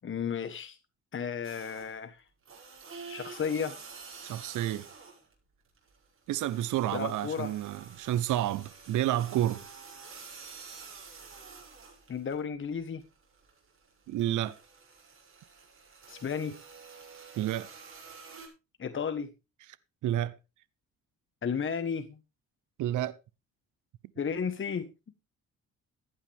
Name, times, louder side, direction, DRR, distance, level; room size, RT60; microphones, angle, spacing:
voice 1, 0.0-0.8 1.1-2.2 3.1-3.8 6.9-7.5 12.1-13.0 16.1-16.6 18.8-19.3 21.4-22.2 24.2-24.9, left 6 dB, 40° left, 1.4 m, -33 dB
sound 1, 1.4-2.0 2.4-5.3 5.6-12.4 12.8-18.5, right 5 dB, 45° right, 6.8 m, -49 dB
voice 2, 4.2-4.9 6.3-9.6 14.1-14.6 17.4-17.7 20.0-20.4 22.8-23.2, right 13 dB, 80° right, 0.9 m, -30 dB
15.5 x 10.5 x 3.5 m
cardioid pair, 90°, 30 cm